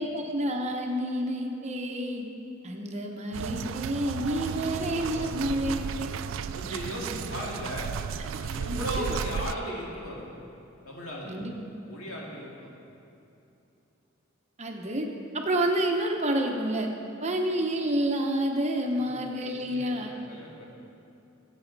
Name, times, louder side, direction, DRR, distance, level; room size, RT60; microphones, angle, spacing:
voice 1, 0.0-2.3 2.6-6.1 7.1-7.2 8.7-9.2 11.2-11.5 14.6-15.1 15.3-16.9 17.2-20.1, right 1 dB, 35° right, 2 dB, 0.9 m, -29 dB
sound 1, 3.3-9.5, right 7 dB, 70° right, 0.3 m, -34 dB
voice 2, 4.3-6.1 6.5-7.9 8.4-10.4 10.8-11.4 11.9-12.7 18.9-20.7, equal, 90° left, -3 dB, 2.3 m, -38 dB
15.5 x 8.1 x 4.0 m, 2.8 s
head